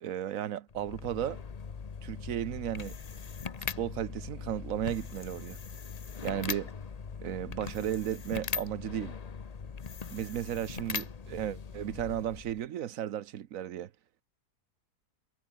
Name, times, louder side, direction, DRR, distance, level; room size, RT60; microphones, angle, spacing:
voice 1, 0.0-1.4 2.0-3.0 3.8-5.6 6.2-6.7 7.2-9.1 10.1-13.9, right 11 dB, 60° right, 1.1 m, -34 dB
sound 1, 0.7-12.7, left 5 dB, 35° left, 0.6 m, -40 dB
omnidirectional pair, 1.7 m